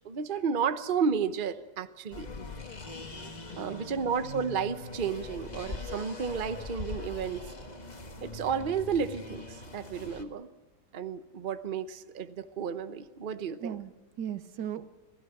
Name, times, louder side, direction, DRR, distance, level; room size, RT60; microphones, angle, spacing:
voice 1, 0.0-2.3 3.6-7.4 8.2-10.5 10.9-13.7, right 6 dB, 40° right, 10 dB, 0.9 m, -32 dB
sound 1, 2.1-10.2, left 3 dB, 25° left, 1.6 m, -42 dB
voice 2, 3.7-4.2 13.6-14.9, right 9 dB, 80° right, 12 dB, 1.5 m, -38 dB
27.5 x 17.0 x 6.0 m, 1.2 s
omnidirectional pair, 1.8 m